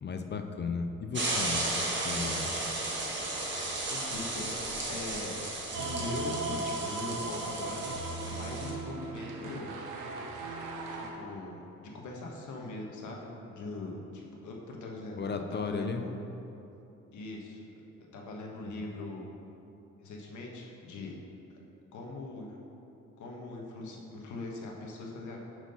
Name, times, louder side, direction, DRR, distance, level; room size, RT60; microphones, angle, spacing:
voice 1, 0.0-2.5 15.2-16.1 18.6-18.9, left 5 dB, 35° left, 6 dB, 0.5 m, -35 dB
sound 1, 1.1-8.7, right 2 dB, 40° right, 1.8 m, -34 dB
voice 2, 3.9-4.6 4.9-5.4 5.8-7.9 8.2-9.7 10.9-15.2 15.5-16.2 17.1-17.8 18.1-19.3 20.0-21.2 21.9-22.6 23.2-25.4, left 2 dB, 75° left, -1 dB, 1.4 m, -41 dB
sound 2, 5.7-11.1, right 3 dB, 85° right, 1.1 m, -37 dB
7.5 x 5.0 x 5.5 m, 2.9 s
cardioid pair, 90°, 30 cm